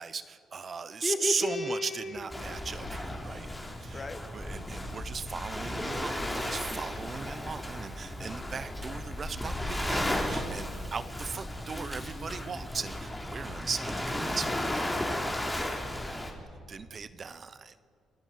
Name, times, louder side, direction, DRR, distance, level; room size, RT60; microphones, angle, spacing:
voice 1, 0.0-3.5 3.8-15.1 16.7-17.8, right 5 dB, 40° right, 13 dB, 1.0 m, -37 dB
voice 2, 1.0-2.3 3.9-4.2 8.2-8.5 15.6-16.3, left 3 dB, 30° left, 10 dB, 1.7 m, -35 dB
sound 1, 2.1-3.9 4.5-4.6 5.2-6.9 7.6-7.8 8.1-9.6 10.1-10.2 10.4-10.5 10.8-11.2 11.4-13.1, left 4 dB, 75° left, 5.2 m, -52 dB
Waves surf, 2.3-16.3, left 1 dB, 10° left, 3.8 m, -35 dB
28.0 x 18.0 x 7.7 m, 2.1 s
cardioid pair, 90°, 0 cm